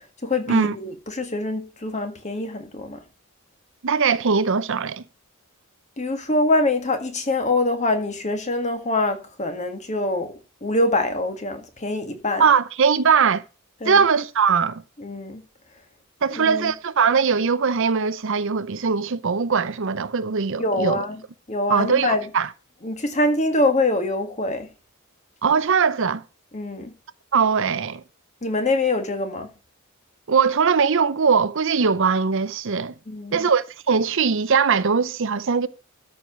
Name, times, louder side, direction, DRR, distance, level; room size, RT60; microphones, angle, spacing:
voice 1, 0.0-3.0 6.0-10.3 10.6-12.4 13.8-14.0 15.0-15.4 16.3-16.7 20.6-21.2 21.5-22.3 22.8-24.7 26.5-26.9 28.4-29.5 33.1-33.4, left 2 dB, 30° left, 1.7 m, -24 dB
voice 2, 3.8-5.0 12.4-13.4 13.8-14.8 16.2-21.0 21.7-22.5 25.4-26.2 27.3-28.0 30.3-32.9 33.3-35.7, right 5 dB, 60° right, 0.6 m, -20 dB
13.0 x 4.8 x 6.1 m
head